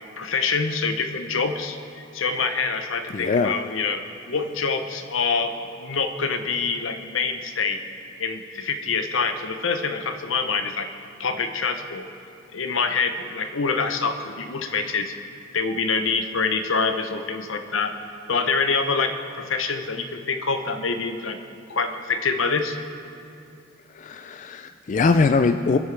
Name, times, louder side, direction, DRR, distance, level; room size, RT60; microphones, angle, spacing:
voice 1, 0.2-4.0 4.3-7.8 8.2-10.9 11.2-12.0 12.5-15.2 15.5-17.9 18.3-21.4 21.7-22.8, left 4 dB, 75° left, 7 dB, 0.8 m, -25 dB
voice 2, 3.1-3.6 23.9-25.8, left 4 dB, 40° left, 9 dB, 0.3 m, -21 dB
25.5 x 8.8 x 3.3 m, 2.6 s
head